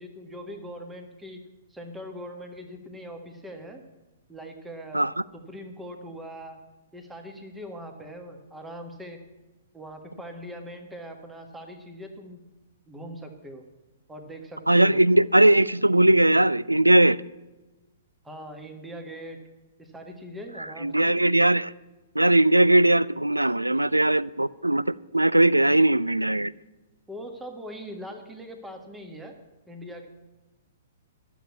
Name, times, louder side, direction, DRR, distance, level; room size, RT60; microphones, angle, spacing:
voice 1, 0.0-1.4 1.7-3.8 4.3-5.0 5.5-6.6 6.9-9.2 9.7-12.4 12.9-13.6 14.1-15.0 18.2-19.4 19.8-21.2 27.1-29.4 29.7-30.1, equal, 5° right, 1.5 m, -41 dB
voice 2, 14.7-17.2 20.8-21.7 22.2-24.8 25.1-26.5, right 1 dB, 85° right, 0.3 m, -19 dB
12.0 x 7.2 x 8.3 m
figure-of-eight pair, 115°, 0 cm